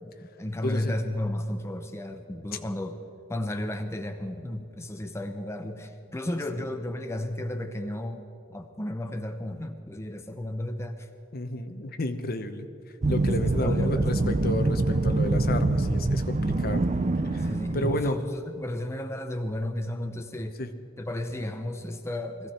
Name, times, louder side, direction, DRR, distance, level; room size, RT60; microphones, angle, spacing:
voice 1, 0.0-3.0 3.3-8.2 8.5-11.1 13.3-14.9 17.4-20.6 21.0-22.5, left 1 dB, 15° left, 6 dB, 0.7 m, -33 dB
voice 2, 0.6-0.9 11.3-12.7 13.1-16.8 17.3-18.2 20.6-20.7, left 1 dB, 50° left, 8 dB, 0.9 m, -31 dB
sound 1, 13.0-18.1, right 2 dB, 40° right, 0.6 m, -25 dB
21.5 x 15.0 x 4.4 m, 2.5 s
head